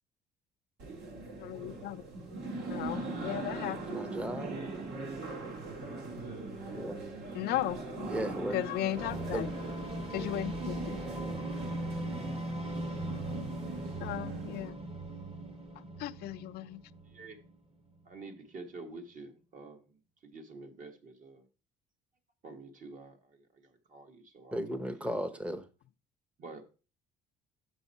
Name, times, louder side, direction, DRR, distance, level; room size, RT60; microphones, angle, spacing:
sound 1, 0.8-14.7, right 2 dB, 75° right, 2.1 m, -41 dB
voice 1, 1.4-2.0 2.7-4.0 7.3-7.8 8.5-9.5 10.1-11.0 13.3-13.5 14.0-14.8 16.0-16.8, left 14 dB, 70° left, 0.4 m, -36 dB
voice 2, 3.9-4.5 6.7-7.0 8.1-8.6 9.3-9.5 24.5-25.7, equal, 5° right, 0.7 m, -35 dB
sound 2, 8.9-17.5, right 1 dB, 35° right, 1.2 m, -39 dB
voice 3, 17.0-17.4 18.0-20.0 20.2-21.4 22.4-25.1 26.4-26.7, right 3 dB, 50° right, 1.4 m, -48 dB
6.2 x 6.2 x 4.1 m
cardioid pair, 110°, 17 cm